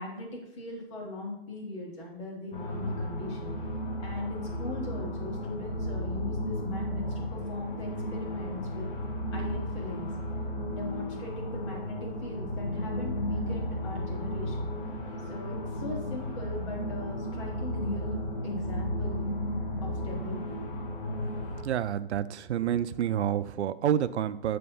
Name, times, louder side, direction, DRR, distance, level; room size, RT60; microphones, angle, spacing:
voice 1, 0.0-3.5 4.0-7.1 7.3-8.9 9.3-10.1 10.7-14.7 15.3-19.2 19.8-20.6, left 2 dB, 25° left, -1 dB, 1.5 m, -39 dB
sound 1, 2.5-21.6, left 1 dB, 50° left, 1.1 m, -34 dB
voice 2, 21.6-24.6, right 10 dB, 85° right, 13 dB, 0.5 m, -28 dB
7.7 x 3.4 x 5.5 m, 0.89 s
hypercardioid pair, 170°, 33 cm